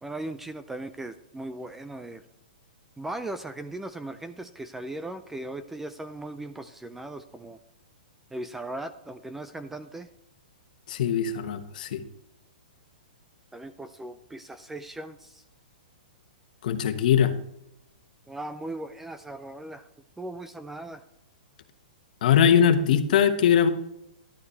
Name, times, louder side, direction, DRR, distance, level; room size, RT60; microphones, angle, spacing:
voice 1, 0.0-2.2 3.0-7.6 8.3-10.1 13.5-15.4 18.3-19.9 20.2-21.0, right 2 dB, 5° right, 10 dB, 0.4 m, -38 dB
voice 2, 10.9-12.0 16.6-17.3 22.2-23.7, left 8 dB, 55° left, 8 dB, 1.2 m, -21 dB
11.5 x 9.6 x 3.2 m, 0.80 s
hypercardioid pair, 155°, 5 cm